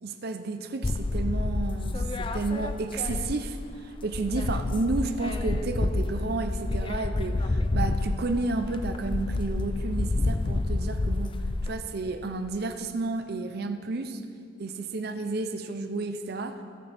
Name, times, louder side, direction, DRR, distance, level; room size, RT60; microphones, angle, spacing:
voice 1, 0.0-3.6 4.0-11.3 11.6-14.2 14.6-16.6, right 3 dB, 55° right, 8 dB, 0.6 m, -31 dB
sound 1, 0.8-3.7 4.0-11.7, left 2 dB, 25° left, 0.4 m, -29 dB
20.0 x 6.8 x 3.5 m, 2.4 s
head